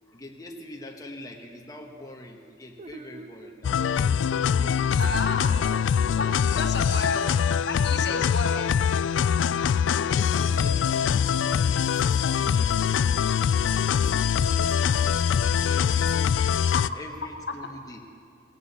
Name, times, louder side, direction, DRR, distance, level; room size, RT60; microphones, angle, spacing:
voice 1, 0.1-4.2 4.5-5.8 6.5-7.1 10.0-13.5 13.9-16.6 16.9-18.0, left 1 dB, 20° left, 1 dB, 1.1 m, -44 dB
sound 1, 2.8-6.9, right 2 dB, 35° right, 0.4 m, -46 dB
sound 2, 3.6-16.9, left 7 dB, 80° left, 0.3 m, -23 dB
voice 2, 5.0-5.5 6.2-7.3 7.7-8.8 16.7-17.0, left 3 dB, 65° left, 5 dB, 1.1 m, -31 dB
17.0 x 16.0 x 4.2 m, 2.4 s
head